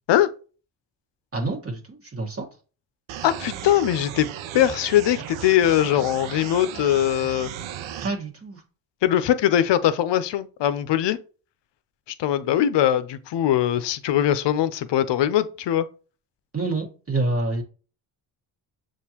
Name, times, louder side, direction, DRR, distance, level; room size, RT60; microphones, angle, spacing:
voice 1, 1.3-2.5 8.0-8.6 16.5-17.6, right 2 dB, 30° right, 1.5 m, -27 dB
sound 1, 3.1-8.1, right 10 dB, 75° right, 0.7 m, -36 dB
voice 2, 3.2-4.3 4.5-7.5 9.0-11.2 12.2-15.9, left 11 dB, 60° left, 0.7 m, -21 dB
6.7 x 2.6 x 2.9 m
cardioid pair, 75°, 47 cm